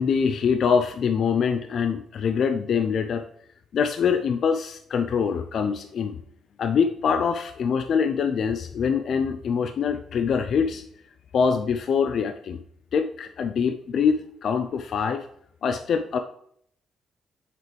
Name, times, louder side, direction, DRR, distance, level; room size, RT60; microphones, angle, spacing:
voice 1, 0.0-3.2 3.7-6.2 6.6-10.8 11.3-12.6 12.9-15.3 15.6-16.2, left 6 dB, 60° left, 7 dB, 0.4 m, -24 dB
7.8 x 4.9 x 3.2 m, 0.68 s
cardioid pair, 90°, 0 cm